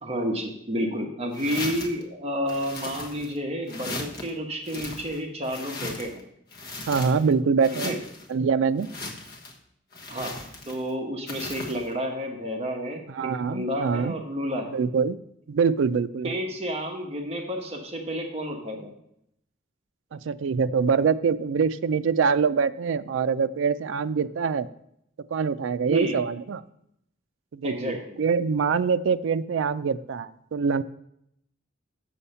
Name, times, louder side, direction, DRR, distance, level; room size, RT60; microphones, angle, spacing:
voice 1, 0.0-6.2 7.8-8.0 10.1-10.3 10.7-14.7 16.2-18.9 25.9-26.2 27.6-28.2, equal, 35° right, 2 dB, 1.0 m, -30 dB
sound 1, 1.3-2.0 2.5-3.4 3.7-4.3 4.6-6.2 6.5-7.3 7.6-8.3 8.8-9.6 9.9-10.9 11.3-11.9, left 2 dB, 55° left, 1.2 m, -37 dB
voice 2, 6.9-8.0 8.3-8.9 13.1-14.1 14.7-15.2 15.5-16.4 20.1-24.7 25.3-26.6 27.5-30.8, right 5 dB, 75° right, 12 dB, 0.4 m, -24 dB
7.0 x 7.0 x 5.5 m, 0.76 s
head